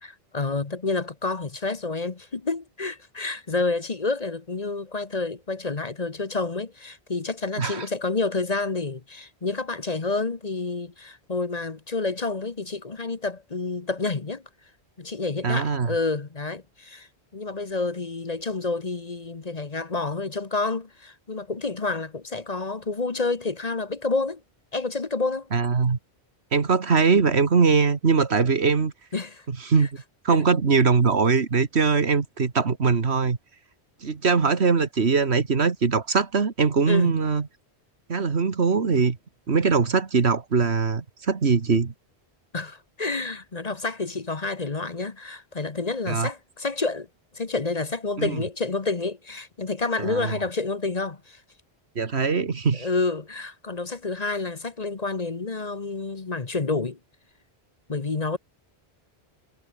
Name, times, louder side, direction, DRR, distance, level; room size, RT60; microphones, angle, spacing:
voice 1, 0.0-14.4 15.0-24.4 24.7-25.5 29.1-29.4 29.8-29.9 30.3-30.4 36.9-37.1 42.5-47.1 47.3-51.4 52.8-57.0 57.9-58.4, left 3 dB, 40° left, 1.3 m, -29 dB
voice 2, 15.4-15.9 25.5-26.0 26.5-28.9 29.7-29.9 30.2-33.4 34.0-37.5 38.1-39.2 39.5-41.9 46.1-46.3 48.2-48.4 50.0-50.3 52.0-52.9, right 5 dB, 75° right, 2.0 m, -21 dB
omnidirectional pair, 1.1 m